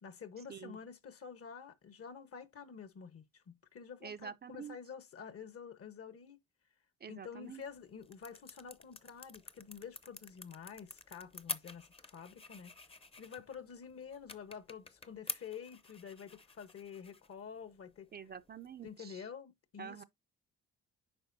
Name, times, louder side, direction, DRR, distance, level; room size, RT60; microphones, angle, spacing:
voice 1, 0.0-6.4 7.1-12.7 13.2-18.1 18.8-20.0, left 7 dB, 50° left, 1.1 m, -49 dB
voice 2, 4.0-4.8 7.0-7.6 18.1-19.2 19.8-20.0, right 7 dB, 35° right, 0.5 m, -47 dB
sound 1, 7.4-19.0, left 3 dB, 20° left, 0.7 m, -49 dB
8.9 x 5.3 x 2.6 m
cardioid pair, 90°, 30 cm